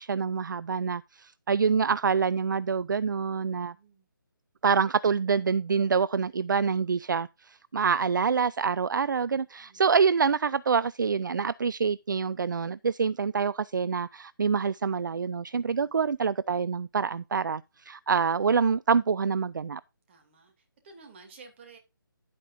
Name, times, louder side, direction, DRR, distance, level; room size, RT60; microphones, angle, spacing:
voice 1, 0.0-3.7 4.6-19.8, right 6 dB, 60° right, 0.4 m, -26 dB
voice 2, 3.7-4.1 9.6-9.9 15.6-16.0 20.1-21.8, right 4 dB, 30° right, 2.5 m, -53 dB
11.0 x 8.4 x 2.6 m
figure-of-eight pair, 145°, 12 cm